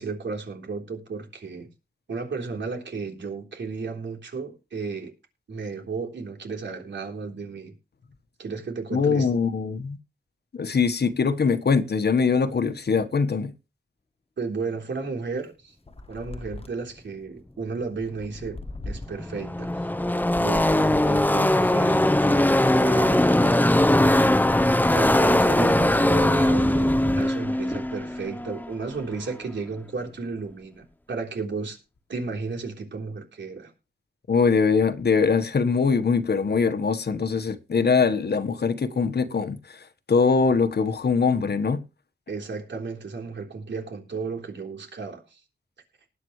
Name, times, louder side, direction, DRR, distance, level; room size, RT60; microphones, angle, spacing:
voice 1, 0.0-1.7 2.1-5.1 5.5-7.8 8.4-9.3 14.4-15.8 16.1-18.6 18.9-19.7 20.4-23.6 24.9-31.8 32.1-33.7 42.3-45.4, right 4 dB, 85° right, 3.7 m, -33 dB
voice 2, 8.9-10.0 10.5-13.5 34.3-41.8, left 5 dB, 65° left, 1.4 m, -22 dB
sound 1, 15.9-17.0 17.9-19.3 20.1-21.5 22.2-23.4, left 2 dB, 30° left, 1.4 m, -39 dB
Car passing by / Race car auto racing, 18.4-18.5 18.7-29.3, left 1 dB, 10° left, 0.8 m, -21 dB
19.5 x 8.6 x 3.2 m
cardioid pair, 65°, 18 cm